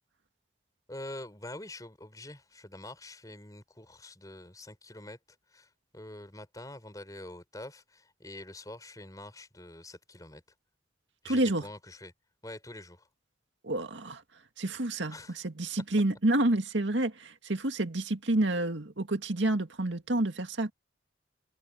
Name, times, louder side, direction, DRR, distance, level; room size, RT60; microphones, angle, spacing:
voice 1, 0.9-5.2 5.5-10.4 11.2-12.1 12.4-13.1 15.1-15.4 16.4-16.5, left 1 dB, 20° left, 5.5 m, -45 dB
voice 2, 11.2-11.6 13.6-14.2 14.6-20.7, right 1 dB, 80° right, 2.0 m, -29 dB
head